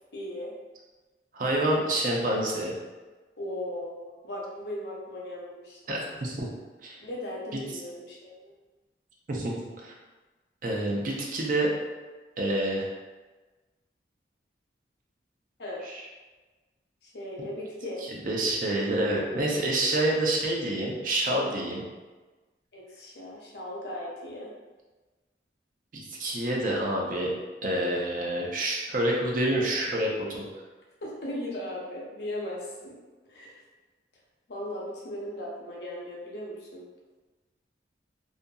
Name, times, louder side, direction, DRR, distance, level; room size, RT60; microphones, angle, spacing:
voice 1, 0.1-0.5 3.4-6.0 7.0-8.5 15.6-15.8 17.0-18.0 22.7-24.5 31.0-33.0 33.3-33.6 34.5-36.8, left 1 dB, 65° left, -3 dB, 0.7 m, -37 dB
voice 2, 1.3-2.8 5.9-6.5 6.8-7.0 9.3-9.9 10.6-11.7 12.4-12.9 15.8-15.9 18.0-21.8 25.9-27.3 27.6-30.4, right 1 dB, 45° right, -2 dB, 0.5 m, -27 dB
2.7 x 2.5 x 2.3 m, 1.2 s
head